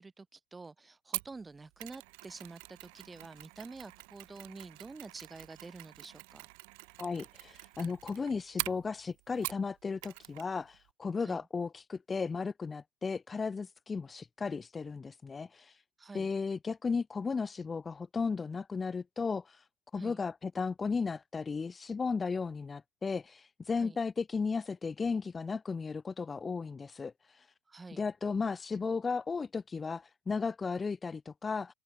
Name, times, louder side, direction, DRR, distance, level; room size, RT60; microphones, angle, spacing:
voice 1, 0.0-6.5 11.2-11.4 16.0-16.3 19.9-20.2 23.8-24.0 27.7-28.0, right 3 dB, 15° right, 4.1 m, -48 dB
Mechanisms, 1.1-9.7 10.0-10.5 10.7-10.9, right 32 dB, 65° right, 2.8 m, -44 dB
voice 2, 7.0-15.8 16.1-19.7 19.9-27.5 27.9-31.7, left 5 dB, 25° left, 0.4 m, -35 dB
hypercardioid pair, 75°, 0 cm